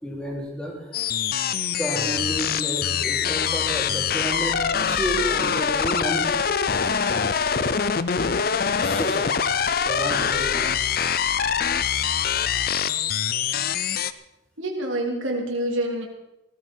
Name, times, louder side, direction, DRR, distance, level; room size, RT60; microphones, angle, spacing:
voice 1, 0.0-1.0 1.7-4.6 4.8-6.3 8.8-9.5 9.9-10.7 12.6-12.7, equal, 5° left, -3 dB, 3.4 m, -31 dB
sound 1, 0.9-14.1, left 7 dB, 50° left, 0.5 m, -24 dB
voice 2, 14.6-16.1, right 1 dB, 85° right, 0 dB, 3.2 m, -27 dB
17.5 x 14.0 x 4.5 m, 0.91 s
head